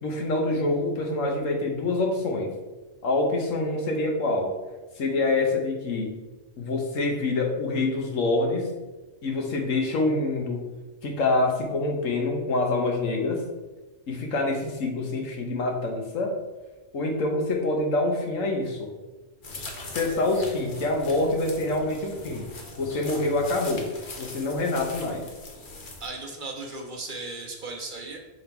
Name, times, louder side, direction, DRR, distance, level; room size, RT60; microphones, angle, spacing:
voice 1, 0.0-2.5 3.0-4.5 5.0-6.1 6.6-8.7 9.2-10.7 11.0-13.4 14.1-16.3 16.9-18.9 19.9-22.5 22.8-23.9 24.2-25.2, left 2 dB, 85° left, 2 dB, 1.4 m, -26 dB
sound 1, 19.4-26.1, left 2 dB, 45° left, 1.0 m, -41 dB
voice 2, 26.0-28.2, right 3 dB, 45° right, 1 dB, 0.9 m, -36 dB
6.2 x 3.6 x 4.5 m, 1.2 s
omnidirectional pair, 1.3 m